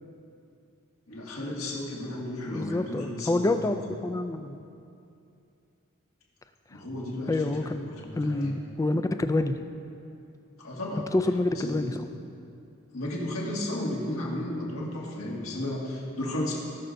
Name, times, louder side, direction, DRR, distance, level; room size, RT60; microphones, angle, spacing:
voice 1, 1.1-3.8 6.7-8.5 10.6-11.1 11.5-12.0 12.9-16.5, left 1 dB, 70° left, -4 dB, 1.9 m, -34 dB
voice 2, 2.5-4.6 6.7-6.8 7.3-9.5 11.1-12.1, left 2 dB, 15° left, 9 dB, 0.3 m, -27 dB
17.5 x 6.4 x 2.7 m, 2.6 s
head